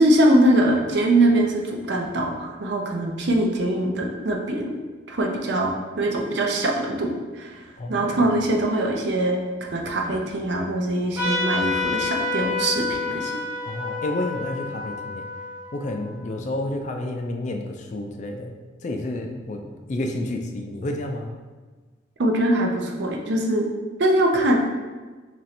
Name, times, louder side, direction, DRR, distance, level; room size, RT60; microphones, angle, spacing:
voice 1, 0.0-4.8 5.1-7.1 7.4-7.6 7.9-13.3 22.2-23.7 24.0-24.6, right 1 dB, 60° right, 1 dB, 0.5 m, -22 dB
voice 2, 7.8-8.3 13.7-15.3 15.7-18.5 18.8-21.3, left 1 dB, 40° left, 3 dB, 0.3 m, -30 dB
Trumpet, 11.2-16.2, left 3 dB, 10° right, 0.8 m, -28 dB
3.0 x 2.6 x 4.2 m, 1.3 s
head